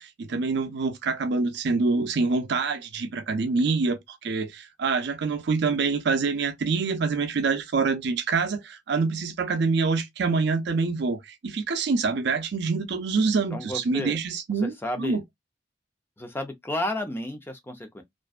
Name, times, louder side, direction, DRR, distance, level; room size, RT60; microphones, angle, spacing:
voice 1, 0.0-15.2, right 4 dB, 60° right, 0.5 m, -26 dB
voice 2, 13.5-14.2 14.6-15.2 16.2-18.0, left 1 dB, 10° left, 0.5 m, -32 dB
2.5 x 2.2 x 2.4 m
head